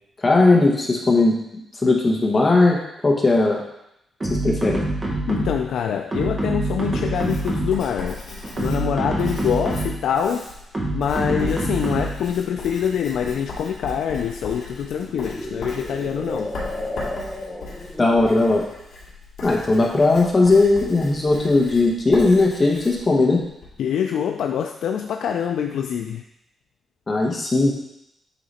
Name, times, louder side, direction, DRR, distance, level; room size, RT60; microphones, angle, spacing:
voice 1, 0.2-1.4 1.8-2.8 3.0-3.6 4.3-4.8 18.0-18.6 19.4-23.4 27.1-27.7, left 2 dB, 20° left, 0 dB, 1.0 m, -18 dB
sound 1, 4.2-5.7 6.1-7.9 8.4-10.1 10.7-12.3, right 2 dB, 20° right, 1.3 m, -26 dB
voice 2, 5.3-8.2 8.6-10.5 10.9-16.5 23.8-26.2, left 8 dB, 80° left, 4 dB, 0.4 m, -25 dB
Writing, 7.1-23.8, left 3 dB, 60° left, 2.6 m, -38 dB
sound 2, 14.8-18.5, left 1 dB, 5° right, 1.0 m, -33 dB
8.3 x 3.9 x 4.2 m, 0.80 s
wide cardioid pair, 160°, 0 cm